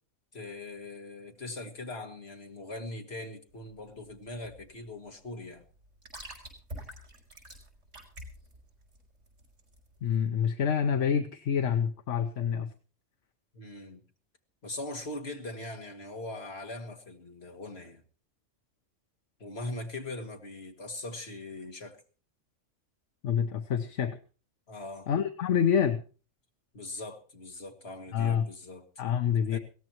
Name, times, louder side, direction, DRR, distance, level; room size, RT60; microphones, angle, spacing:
voice 1, 0.3-5.6 13.5-14.0 14.6-18.0 19.4-22.0 24.7-25.1 26.7-28.8 29.5-29.6, left 2 dB, 55° left, 2.3 m, -41 dB
sound 1, 3.5-10.2, right 1 dB, 80° right, 5.3 m, -48 dB
voice 2, 10.0-12.7 23.2-24.2 25.1-26.0 28.1-28.5 29.0-29.6, left 8 dB, 75° left, 1.2 m, -27 dB
21.5 x 17.0 x 3.0 m
omnidirectional pair, 1.3 m